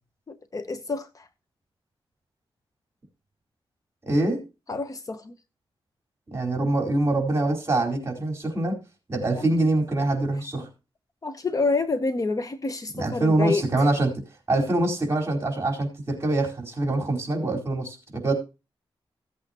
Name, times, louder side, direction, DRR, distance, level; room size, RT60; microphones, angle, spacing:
voice 1, 0.3-1.3 4.7-5.3 9.3-9.5 11.2-13.6, left 3 dB, 35° left, 0.9 m, -28 dB
voice 2, 4.1-4.4 6.3-8.8 9.1-10.7 13.0-14.2 14.5-18.3, right 2 dB, 30° right, 4.4 m, -24 dB
16.5 x 8.3 x 3.0 m
wide cardioid pair, 130°, 10 cm